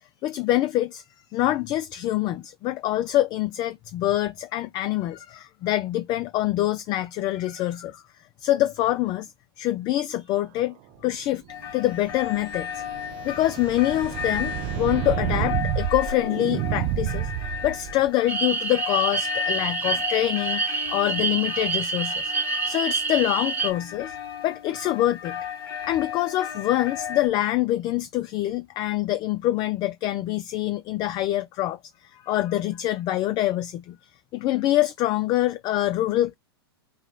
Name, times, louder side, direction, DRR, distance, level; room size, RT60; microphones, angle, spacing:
voice 1, 0.2-1.0 1.3-8.0 8.4-9.3 9.6-10.8 11.0-11.4 11.7-12.8 13.2-17.3 17.6-24.2 24.4-25.4 25.8-34.0 34.3-36.3, left 14 dB, 30° left, 0.4 m, -25 dB
sound 1, 11.5-27.3, left 8 dB, 60° left, 1.9 m, -35 dB
sound 2, 11.7-18.1, right 11 dB, 35° right, 0.5 m, -30 dB
sound 3, 18.3-23.7, right 4 dB, 15° right, 1.0 m, -27 dB
5.4 x 2.2 x 3.8 m
hypercardioid pair, 105°, 13 cm